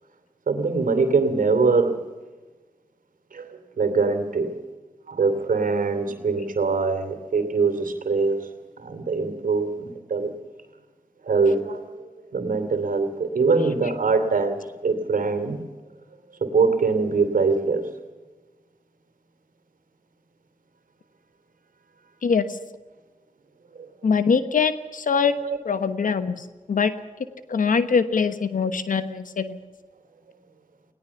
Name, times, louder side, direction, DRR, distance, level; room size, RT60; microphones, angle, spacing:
voice 1, 0.5-2.0 3.3-3.5 3.8-4.5 5.1-8.5 8.8-10.3 11.2-11.8 12.3-15.6 16.4-17.9 25.4-25.6, right 4 dB, 80° right, 8 dB, 2.8 m, -23 dB
voice 2, 22.2-22.6 24.0-25.4 25.6-26.9 27.5-29.6, left 5 dB, 75° left, 11 dB, 1.2 m, -23 dB
20.0 x 18.5 x 7.1 m, 1.3 s
cardioid pair, 50°, 14 cm